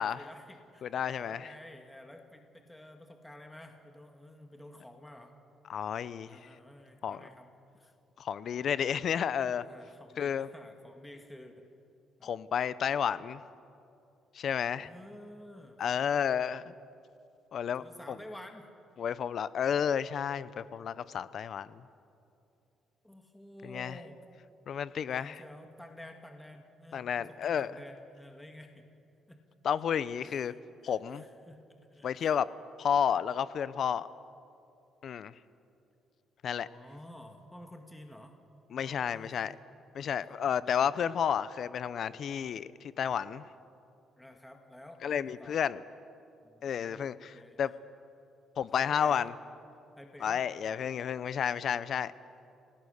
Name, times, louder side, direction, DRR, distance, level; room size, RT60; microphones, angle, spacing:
voice 1, 0.0-5.4 6.3-7.5 7.8-7.9 8.8-8.9 9.6-11.7 12.2-12.3 14.8-16.2 17.8-18.7 23.0-24.3 25.1-28.9 29.3-29.4 30.3-32.3 36.5-38.4 38.8-39.6 40.0-40.9 44.2-45.6 46.4-47.1 47.3-47.6 48.7-49.2 50.0-50.4, left 1 dB, 5° left, 4 dB, 1.8 m, -51 dB
voice 2, 0.8-1.5 5.7-6.5 7.0-7.2 8.2-9.6 10.2-10.5 12.2-13.4 14.3-14.9 15.8-16.7 17.5-18.2 19.0-21.9 23.6-24.0 24.7-25.4 26.9-27.7 29.6-30.5 30.8-31.2 32.0-32.5 32.8-34.1 35.0-35.3 36.4-36.7 38.7-39.5 39.9-43.4 45.0-45.8 46.6-47.7 48.6-49.3 50.2-52.1, left 8 dB, 55° left, 16 dB, 0.7 m, -31 dB
29.0 x 19.0 x 6.6 m, 2.6 s
cardioid pair, 120°, 0 cm